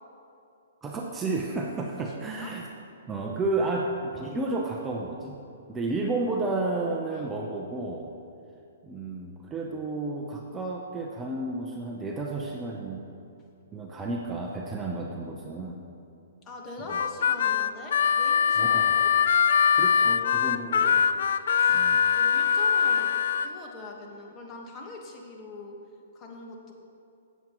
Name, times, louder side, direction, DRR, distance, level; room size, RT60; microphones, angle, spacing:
voice 1, 0.8-2.7 3.1-5.4 5.7-8.1 8.8-13.1 13.7-15.8 16.9-17.0 18.6-19.0 19.8-21.0 21.7-22.1, right 2 dB, 15° right, -1 dB, 0.7 m, -32 dB
voice 2, 2.0-2.5 7.1-7.3 16.4-19.1 19.9-20.9 21.6-23.1 23.4-25.8 26.1-26.7, left 2 dB, 20° left, 0 dB, 1.4 m, -43 dB
Harmonica, 16.9-23.5, left 7 dB, 65° left, 0.4 m, -22 dB
17.0 x 7.4 x 3.0 m, 2.7 s
hypercardioid pair, 150°, 0 cm